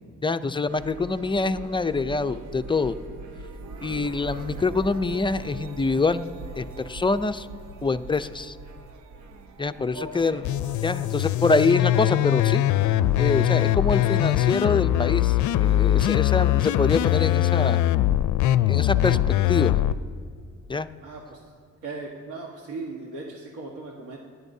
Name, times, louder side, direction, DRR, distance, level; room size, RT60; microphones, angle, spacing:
voice 1, 0.2-3.0 3.8-6.3 6.6-7.5 7.8-8.6 9.6-10.4 10.8-12.6 13.2-17.8 18.7-19.2 19.5-19.8 20.7-20.9, left 3 dB, 15° left, 10 dB, 0.4 m, -25 dB
sound 1, 0.7-17.4, right 3 dB, 65° right, 0.9 m, -43 dB
voice 2, 9.9-10.4 21.0-21.4 21.8-24.2, right 3 dB, 85° right, -1 dB, 1.5 m, -37 dB
sound 2, 10.4-19.9, left 13 dB, 75° left, 0.4 m, -22 dB
25.5 x 11.0 x 2.7 m, 2.2 s
cardioid pair, 90°, 30 cm